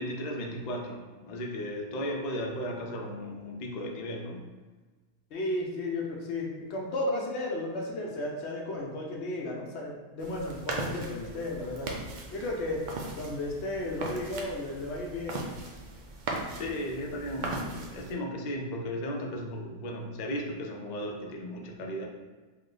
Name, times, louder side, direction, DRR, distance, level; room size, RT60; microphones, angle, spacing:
voice 1, 0.0-4.5 16.6-22.1, equal, 90° left, 1 dB, 0.3 m, -35 dB
voice 2, 5.3-11.9 12.3-15.4, left 2 dB, 65° left, -1 dB, 0.9 m, -34 dB
sound 1, 10.2-18.1, right 2 dB, 75° right, 0.4 m, -38 dB
3.2 x 2.1 x 3.7 m, 1.3 s
omnidirectional pair, 1.3 m